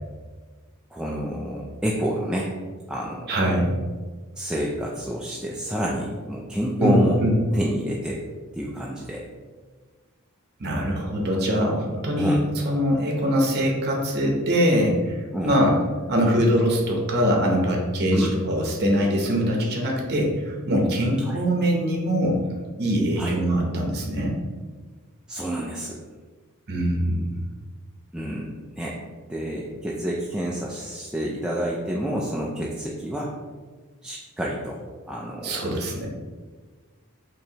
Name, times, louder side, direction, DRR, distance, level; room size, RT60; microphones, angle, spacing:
voice 1, 0.9-2.5 2.9-3.4 4.4-7.2 7.5-8.2 8.5-9.2 12.2-12.4 15.3-15.5 18.1-18.4 21.3-21.4 23.2-23.3 25.3-26.0 28.1-29.0 29.3-33.3 34.0-34.8 35.1-35.7, equal, 5° right, -4 dB, 0.3 m, -28 dB
voice 2, 3.3-3.7 6.8-7.4 10.6-12.4 12.6-15.8 16.1-22.4 22.8-24.4 26.7-27.4 35.4-36.1, equal, 50° right, 0 dB, 0.8 m, -23 dB
4.6 x 3.0 x 2.8 m, 1.4 s
head